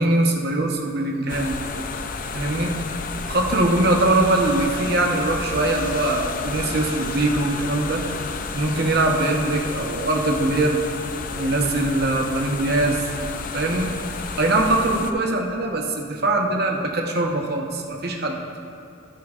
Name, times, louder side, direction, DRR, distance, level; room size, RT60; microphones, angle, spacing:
voice 1, 0.0-1.6 2.3-2.7 3.3-8.0 8.5-10.8 11.4-13.0 13.5-13.9 14.4-18.4, right 2 dB, 45° right, 1 dB, 0.9 m, -22 dB
sound 1, 1.3-15.1, left 4 dB, 40° left, 0.4 m, -31 dB
13.5 x 10.0 x 2.5 m, 2.4 s
head